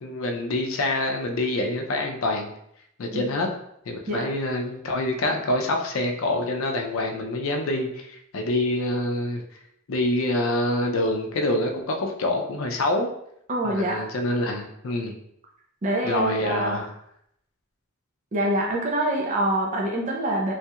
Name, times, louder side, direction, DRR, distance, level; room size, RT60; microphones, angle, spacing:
voice 1, 0.0-2.5 3.0-3.5 3.9-9.4 9.9-13.1 13.6-15.1 16.0-16.9, left 1 dB, 75° left, 3 dB, 0.5 m, -26 dB
voice 2, 13.5-14.1 15.8-16.8 18.3-20.5, right 1 dB, 35° right, -1 dB, 0.5 m, -25 dB
3.1 x 2.3 x 2.8 m, 0.74 s
head